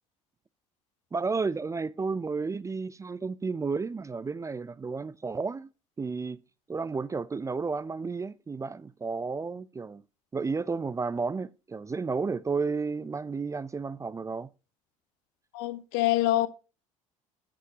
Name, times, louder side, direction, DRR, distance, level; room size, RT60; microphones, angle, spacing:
voice 1, 1.1-5.7 6.0-6.4 6.7-10.0 10.3-14.5, right 4 dB, 20° right, 0.5 m, -32 dB
voice 2, 15.5-16.5, left 15 dB, 65° left, 0.9 m, -25 dB
9.2 x 8.5 x 2.8 m
hypercardioid pair, 65°, 17 cm